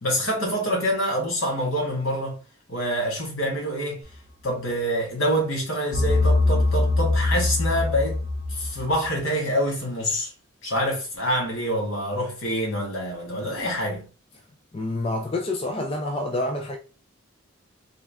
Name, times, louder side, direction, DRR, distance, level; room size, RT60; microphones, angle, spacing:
voice 1, 0.0-2.4 2.7-4.0 4.4-8.2 8.5-10.3 10.6-14.0, equal, 70° left, 1.8 m, -26 dB
sound 1, 5.9-9.1, left 2 dB, 45° left, 0.9 m, -22 dB
voice 2, 14.7-16.8, left 2 dB, 25° left, 0.4 m, -27 dB
3.7 x 2.3 x 3.5 m
head